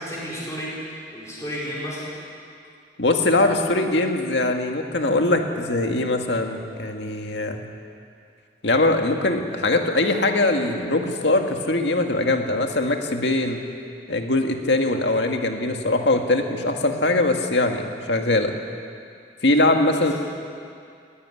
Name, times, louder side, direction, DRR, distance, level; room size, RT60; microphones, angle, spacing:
voice 1, 0.0-2.1, equal, 15° left, -7 dB, 5.1 m, -32 dB
voice 2, 3.0-7.6 8.6-13.6 14.1-18.6 19.4-20.1, left 2 dB, 80° left, 4 dB, 1.9 m, -22 dB
19.5 x 15.0 x 9.9 m, 2.4 s
head